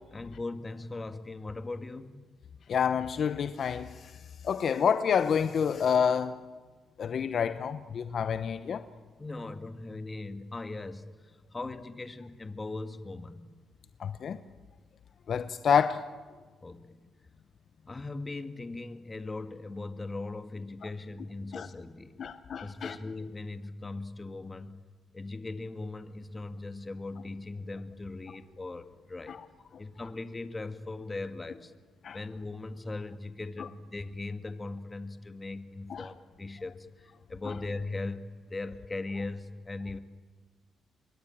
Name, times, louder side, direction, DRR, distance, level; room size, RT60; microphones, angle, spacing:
voice 1, 0.1-2.2 9.2-11.0 11.5-13.4 16.6-16.9 17.9-22.2 22.6-24.8 25.1-29.4 29.8-31.7 32.1-36.9 37.3-40.0, left 2 dB, 20° left, 1.9 m, -39 dB
voice 2, 2.7-3.9 4.4-6.4 7.0-8.8 14.0-14.4 15.3-16.0 21.5-21.7 22.2-23.0 29.3-29.4 32.0-32.2 33.6-33.7 35.9-36.1 37.4-37.5, left 7 dB, 55° left, 1.0 m, -28 dB
26.5 x 22.5 x 8.9 m
cardioid pair, 90°, 0 cm